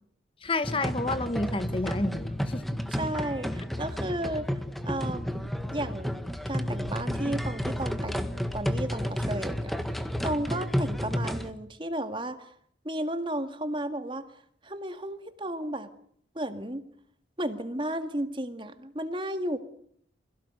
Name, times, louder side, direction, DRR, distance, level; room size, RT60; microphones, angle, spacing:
voice 1, 0.4-2.8, left 2 dB, 30° left, 12 dB, 1.1 m, -30 dB
sound 1, 0.6-11.5, equal, ahead, 1.6 m, -31 dB
voice 2, 2.9-6.2 6.5-8.3 8.5-12.5 12.8-15.9 16.4-16.8 17.4-19.6, right 1 dB, 30° right, 9 dB, 1.9 m, -34 dB
27.5 x 17.0 x 9.4 m, 0.65 s
head